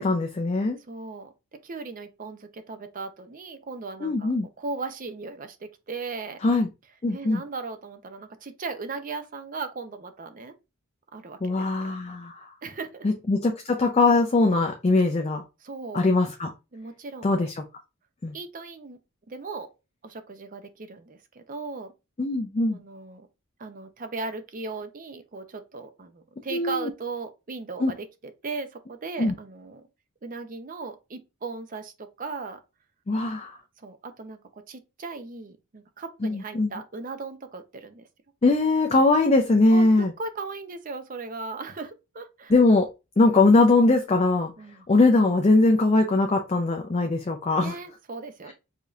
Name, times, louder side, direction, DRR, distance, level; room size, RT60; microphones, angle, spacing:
voice 1, 0.0-0.8 4.0-4.5 6.4-6.7 7.0-7.4 11.4-12.4 13.0-15.4 15.9-16.5 17.2-17.5 18.2-18.3 22.2-22.8 26.5-26.9 27.8-27.9 29.2-29.3 33.1-33.5 36.2-36.7 38.4-40.1 42.5-42.9 43.2-44.5 44.9-47.8, left 2 dB, 30° left, 0.4 m, -21 dB
voice 2, 0.9-1.3 1.6-4.3 4.6-6.4 7.1-10.6 11.1-11.9 12.6-13.1 15.6-16.1 16.7-17.5 18.3-19.0 19.3-19.7 20.0-21.9 22.7-23.3 23.6-28.1 28.4-29.8 30.2-32.6 33.8-38.1 39.7-39.8 40.2-42.5 44.6-44.9 47.6-48.5, right 4 dB, 40° right, 0.5 m, -37 dB
4.9 x 2.7 x 2.4 m
head